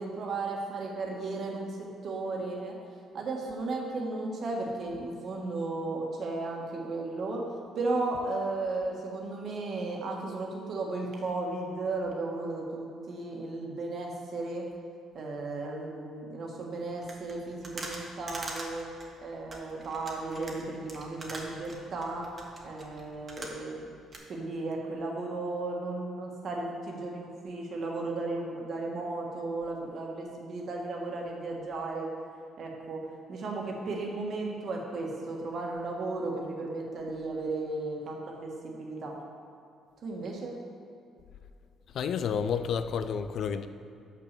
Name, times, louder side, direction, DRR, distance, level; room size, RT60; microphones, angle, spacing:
voice 1, 0.0-2.8 3.1-7.4 7.7-14.7 15.1-18.9 19.2-22.3 22.6-23.8 24.3-32.1 32.6-33.0 33.3-39.2 40.0-40.6, right 2 dB, 55° right, 0 dB, 1.6 m, -35 dB
sound 1, 17.0-23.8 24.1-24.2, right 2 dB, 30° right, 1.4 m, -43 dB
voice 2, 41.9-43.7, left 7 dB, 60° left, 10 dB, 0.4 m, -30 dB
6.0 x 6.0 x 6.8 m, 2.4 s
cardioid pair, 100°, 0 cm